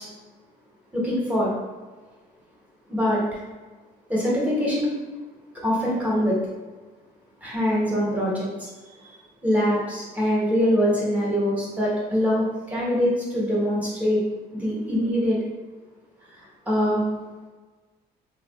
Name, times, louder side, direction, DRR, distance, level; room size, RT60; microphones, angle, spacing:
voice 1, 0.9-1.5 2.9-3.4 4.1-4.9 5.6-6.3 7.4-8.7 9.0-9.2 9.4-14.2 14.5-15.4 16.3-17.0, equal, 10° right, -6 dB, 1.1 m, -23 dB
3.4 x 2.3 x 2.4 m, 1.3 s
cardioid pair, 110°, 17 cm